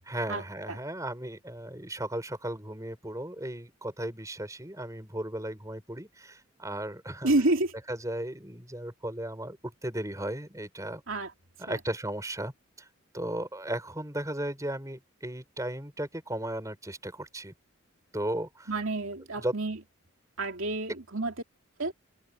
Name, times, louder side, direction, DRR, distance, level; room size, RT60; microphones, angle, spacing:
voice 1, 0.0-7.3 7.9-11.0 11.6-12.5 12.8-12.9 13.1-17.5 18.1-18.7 19.3-19.6, right 1 dB, 15° right, 6.2 m, -35 dB
voice 2, 7.2-7.7 11.1-11.3 11.7-11.8 18.7-19.8 20.4-21.3 21.8-21.9, right 2 dB, 70° right, 2.7 m, -28 dB
open air
head